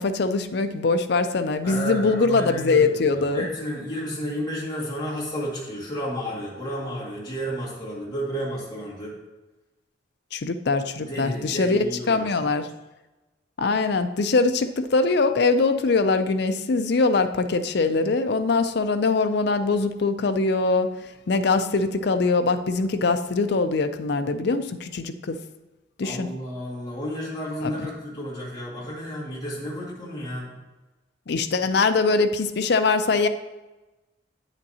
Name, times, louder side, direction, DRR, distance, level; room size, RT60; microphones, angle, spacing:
voice 1, 0.0-3.5 10.3-12.7 13.6-20.9 21.3-25.4 26.0-26.3 27.6-27.7 31.3-33.3, left 3 dB, 55° left, 10 dB, 0.5 m, -22 dB
voice 2, 1.6-9.1 11.0-12.5 26.0-30.5, equal, 20° left, -6 dB, 2.0 m, -32 dB
9.2 x 8.0 x 2.8 m, 1.1 s
head